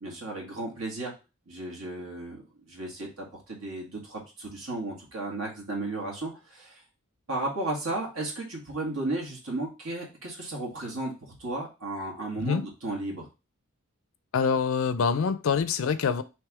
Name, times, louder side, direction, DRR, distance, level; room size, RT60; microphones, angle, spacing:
voice 1, 0.0-1.1 1.5-2.4 2.7-6.8 7.3-13.3, right 2 dB, 80° right, -2 dB, 1.7 m, -34 dB
voice 2, 14.3-16.2, left 6 dB, 65° left, 13 dB, 0.4 m, -25 dB
3.4 x 3.2 x 4.7 m, 0.28 s
head